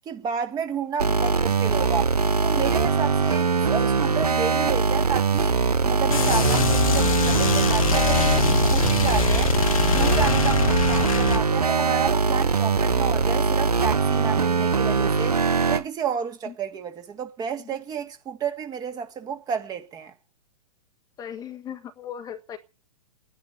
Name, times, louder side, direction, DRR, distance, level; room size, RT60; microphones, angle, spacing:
voice 1, 0.1-9.5 9.9-15.4 15.7-20.1, right 7 dB, 20° right, 1.9 m, -31 dB
sound 1, 1.0-15.8, right 5 dB, 75° right, 0.9 m, -22 dB
sound 2, 6.1-11.4, left 7 dB, 60° left, 1.6 m, -23 dB
voice 2, 21.2-22.6, left 9 dB, 20° left, 1.3 m, -37 dB
12.5 x 10.0 x 9.9 m
figure-of-eight pair, 110°, 20 cm